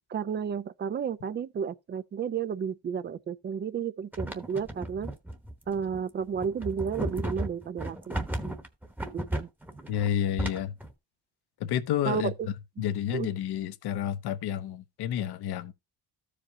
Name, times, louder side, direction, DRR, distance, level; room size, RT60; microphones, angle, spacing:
voice 1, 0.0-5.1 5.7-8.5 9.1-9.5 12.1-12.5 13.1-13.3, right 7 dB, 25° right, 0.4 m, -32 dB
sound 1, 4.1-10.9, right 1 dB, 5° right, 1.0 m, -35 dB
voice 2, 9.9-10.7 11.6-12.3 12.8-15.7, left 10 dB, 65° left, 0.9 m, -30 dB
14.0 x 5.0 x 2.7 m
cardioid pair, 125°, 42 cm